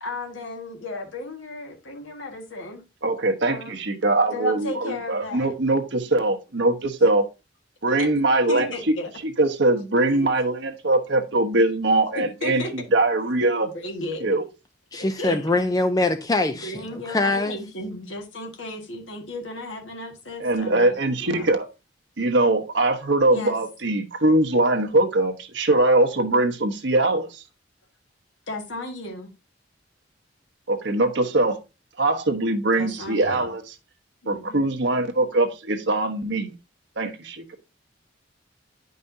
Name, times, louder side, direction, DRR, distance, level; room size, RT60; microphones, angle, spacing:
voice 1, 0.0-2.8 3.4-3.8 4.3-5.5 8.5-9.1 10.1-10.3 12.2-12.7 13.7-14.2 15.2-15.5 16.5-20.9 21.2-21.5 23.3-23.5 28.5-29.3 32.7-33.5 34.2-34.7, left 2 dB, 80° left, 1.7 m, -34 dB
voice 2, 3.0-7.2 7.8-8.9 9.2-13.7 14.2-14.4 15.2-15.4 20.4-21.7 22.2-27.4 30.7-31.6 32.0-33.7 34.3-36.5 37.0-37.5, right 2 dB, 65° right, 1.1 m, -22 dB
voice 3, 14.9-17.6, left 2 dB, 20° left, 0.4 m, -23 dB
9.8 x 5.4 x 2.7 m
head